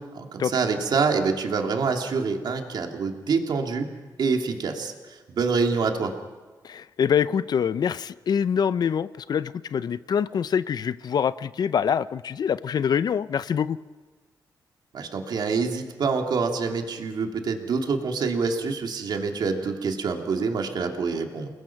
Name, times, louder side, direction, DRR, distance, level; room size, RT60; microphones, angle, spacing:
voice 1, 0.1-3.9 4.2-6.1 14.9-21.5, right 4 dB, 70° right, 3 dB, 2.7 m, -26 dB
voice 2, 6.6-13.8, left 7 dB, 60° left, 15 dB, 0.7 m, -25 dB
30.0 x 21.0 x 5.9 m, 1.3 s
cardioid pair, 95°, 8 cm